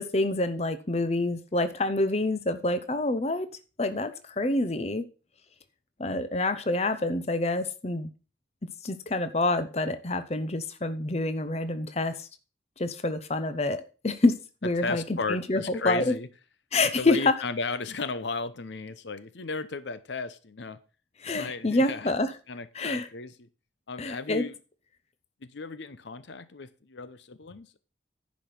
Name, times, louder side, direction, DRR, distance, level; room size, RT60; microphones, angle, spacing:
voice 1, 0.0-3.5 3.8-5.0 6.0-8.1 8.8-12.2 12.8-14.3 14.6-16.1 16.7-17.3 21.2-22.3 22.7-23.1 24.0-24.4, left 2 dB, 35° left, 10 dB, 0.8 m, -27 dB
voice 2, 14.8-16.3 17.0-20.8 21.3-22.1 22.5-23.5 23.9-24.5 25.5-27.8, left 4 dB, 75° left, 13 dB, 0.7 m, -35 dB
10.5 x 5.2 x 5.8 m, 0.34 s
head